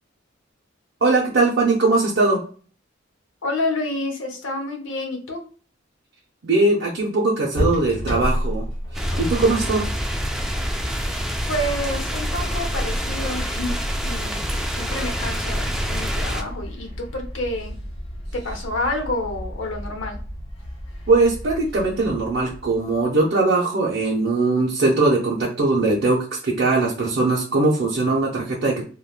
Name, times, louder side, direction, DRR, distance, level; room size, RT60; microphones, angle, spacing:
voice 1, 1.0-2.4 6.4-8.7 8.9-9.9 21.1-28.8, right 3 dB, 60° right, -3 dB, 0.6 m, -20 dB
voice 2, 3.4-5.4 11.5-13.8 14.0-14.4 14.7-17.7 18.3-20.2, left 1 dB, 70° left, 3 dB, 0.8 m, -28 dB
sound 1, 7.5-23.3, equal, 30° left, 1.0 m, -32 dB
sound 2, 8.9-16.4, equal, ahead, 0.3 m, -26 dB
3.4 x 2.3 x 2.3 m, 0.41 s
head